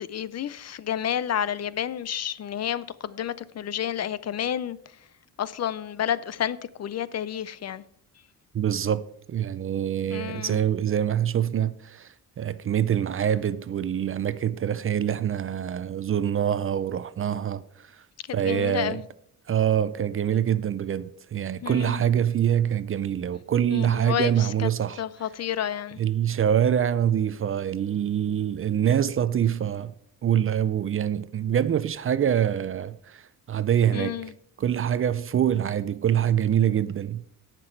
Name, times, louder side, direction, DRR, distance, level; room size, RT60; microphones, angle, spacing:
voice 1, 0.0-4.8 5.4-7.8 10.1-10.6 18.4-19.0 21.6-22.0 23.7-24.7 25.0-26.0 33.9-34.3, left 10 dB, 45° left, 0.5 m, -30 dB
voice 2, 8.5-9.0 9.3-12.1 12.4-17.6 18.3-19.0 19.5-25.0 26.0-29.9 30.2-33.2 33.5-34.1 34.6-37.2, right 9 dB, 35° right, 0.5 m, -25 dB
17.5 x 6.0 x 4.5 m
cardioid pair, 115°, 37 cm